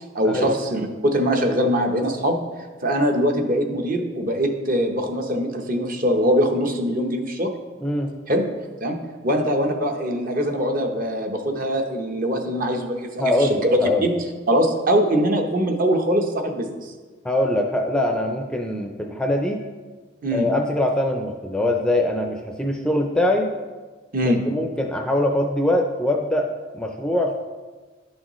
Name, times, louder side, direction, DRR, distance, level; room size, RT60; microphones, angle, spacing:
voice 1, 0.0-2.4 2.8-7.5 8.3-8.4 8.8-9.0 9.2-14.2 14.5-16.7 20.2-20.5 24.1-24.4, equal, 45° right, 4 dB, 0.8 m, -22 dB
voice 2, 13.2-14.0 17.2-19.6 20.3-23.5 24.2-26.5 26.7-27.3, left 1 dB, 5° left, 2 dB, 0.4 m, -22 dB
11.0 x 6.4 x 3.1 m, 1.4 s
head